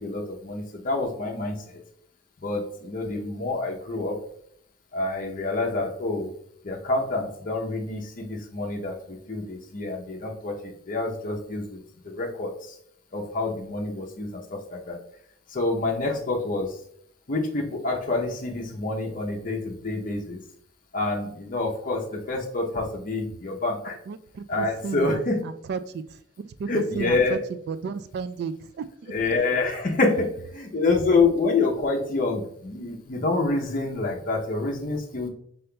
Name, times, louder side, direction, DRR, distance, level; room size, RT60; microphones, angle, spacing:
voice 1, 0.0-1.8 2.4-4.2 4.9-6.3 6.6-12.8 13.1-15.0 15.5-16.8 17.3-20.4 20.9-24.0 24.5-25.4 26.7-27.4 29.1-35.3, left 3 dB, 45° left, 0 dB, 0.7 m, -27 dB
voice 2, 24.1-27.4 27.7-29.1, right 5 dB, 55° right, 12 dB, 0.3 m, -33 dB
5.4 x 3.8 x 2.2 m, 0.66 s
head